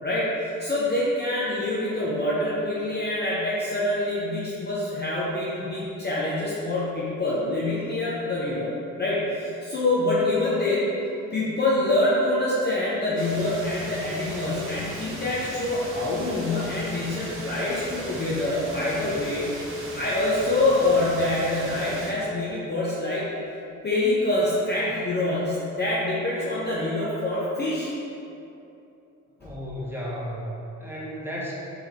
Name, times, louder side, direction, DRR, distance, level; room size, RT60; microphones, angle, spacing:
voice 1, 0.0-8.7 9.0-10.9 11.3-23.2 23.8-27.9 29.4-29.5, left 2 dB, 25° left, -8 dB, 0.8 m, -25 dB
sound 1, 13.2-22.1, right 1 dB, 30° right, 0.7 m, -38 dB
voice 2, 29.4-31.6, equal, 5° right, -6 dB, 1.0 m, -34 dB
3.5 x 3.4 x 3.0 m, 2.8 s
hypercardioid pair, 45°, 39 cm